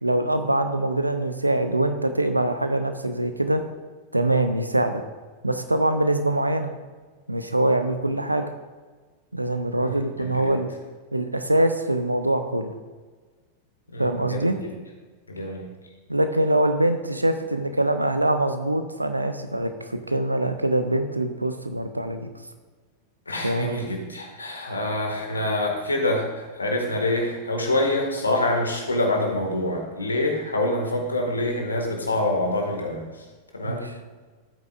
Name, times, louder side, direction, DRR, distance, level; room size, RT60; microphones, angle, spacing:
voice 1, 0.0-3.6 4.1-5.0 5.4-6.7 7.3-8.4 9.3-10.7 11.1-12.7 14.0-14.6 16.1-22.3 23.4-23.7 33.6-34.0, right 1 dB, 85° right, 8 dB, 0.7 m, -23 dB
voice 2, 13.9-14.5 15.3-15.7 23.3-33.0 33.5-33.9, left 1 dB, 80° left, 2 dB, 1.8 m, -26 dB
14.5 x 8.6 x 2.5 m, 1.4 s
figure-of-eight pair, 90°, 0 cm